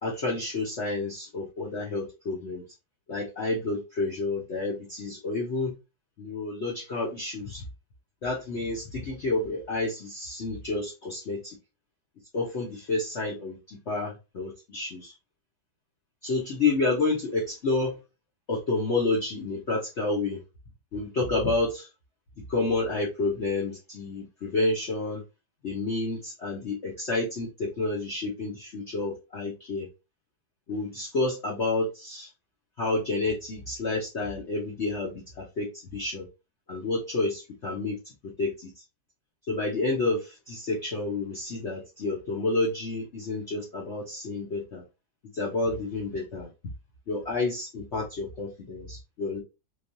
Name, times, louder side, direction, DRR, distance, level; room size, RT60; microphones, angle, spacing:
voice 1, 0.0-2.6 3.1-5.7 6.2-7.6 8.2-11.6 12.3-15.1 16.2-18.0 18.5-20.4 20.9-21.9 22.5-25.2 25.6-29.9 30.7-32.3 32.8-36.3 36.7-38.8 39.5-44.8 45.3-46.5 47.1-49.4, left 3 dB, 50° left, -4 dB, 0.9 m, -30 dB
3.4 x 3.1 x 2.6 m, 0.26 s
omnidirectional pair, 2.1 m